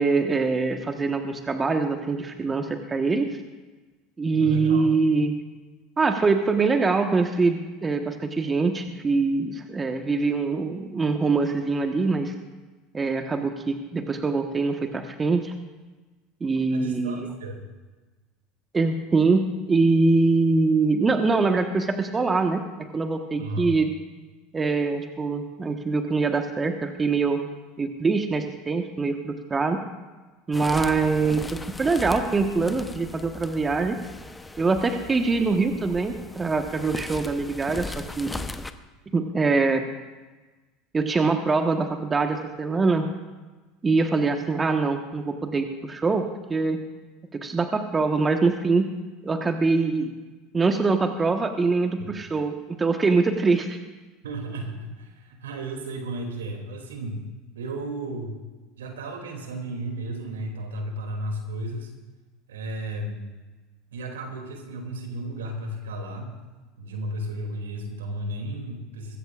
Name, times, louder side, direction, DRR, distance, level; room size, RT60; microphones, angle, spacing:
voice 1, 0.0-3.4 4.2-5.4 6.0-12.3 12.9-15.5 16.4-17.3 18.7-23.9 24.5-27.4 27.8-29.8 30.5-34.0 34.6-38.3 39.1-39.8 40.9-43.1 43.8-46.2 46.5-46.8 47.3-48.9 49.2-50.1 50.5-53.8, right 4 dB, 20° right, 5 dB, 1.3 m, -23 dB
voice 2, 4.3-4.9 16.7-17.6 23.4-23.7 54.2-57.2 57.5-58.4 58.8-61.9 62.5-63.2 63.9-66.3 66.8-69.2, right 1 dB, 80° right, 2 dB, 2.7 m, -34 dB
sound 1, 30.5-38.7, left 2 dB, 15° left, 0.9 m, -38 dB
21.0 x 16.0 x 2.5 m, 1.2 s
hypercardioid pair, 80°, 0 cm